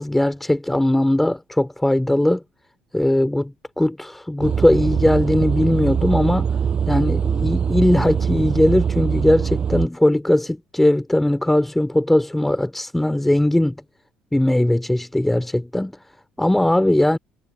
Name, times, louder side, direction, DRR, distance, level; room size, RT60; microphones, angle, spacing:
voice 1, 0.0-2.4 2.9-6.5 6.9-13.8 14.3-16.0 16.4-17.2, left 1 dB, 5° left, 4.5 m, -19 dB
sound 1, 4.4-9.9, right 7 dB, 35° right, 6.1 m, -22 dB
cardioid pair, 135°, 3 cm